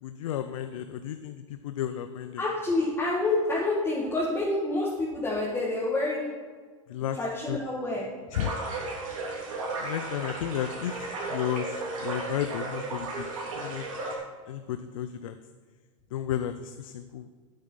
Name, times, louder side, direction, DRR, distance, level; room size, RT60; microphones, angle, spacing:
voice 1, 0.0-2.4 6.9-7.2 7.5-7.6 8.3-8.5 9.3-9.4 9.8-13.3 13.5-13.9 14.5-15.4 16.1-17.3, left 10 dB, 80° left, 10 dB, 0.5 m, -33 dB
voice 2, 2.4-6.3 7.1-8.1, left 2 dB, 15° left, -6 dB, 1.9 m, -28 dB
sound 1, 8.3-14.1, right 3 dB, 85° right, 3.1 m, -34 dB
8.9 x 8.8 x 5.7 m, 1.5 s
supercardioid pair, 125°, 17 cm